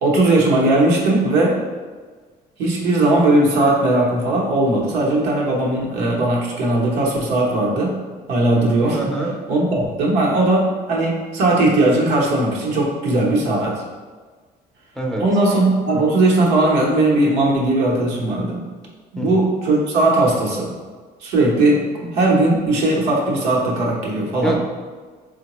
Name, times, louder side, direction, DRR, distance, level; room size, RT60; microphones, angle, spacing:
voice 1, 0.0-1.6 2.6-8.0 8.3-9.0 9.5-13.8 15.2-18.6 19.1-20.7 21.2-24.6, right 2 dB, 90° right, -3 dB, 0.9 m, -18 dB
voice 2, 8.9-9.4 14.9-15.2 19.2-19.5 24.4-24.6, right 2 dB, 5° left, -2 dB, 0.5 m, -24 dB
3.8 x 2.1 x 2.9 m, 1.4 s
cardioid pair, 110°, 17 cm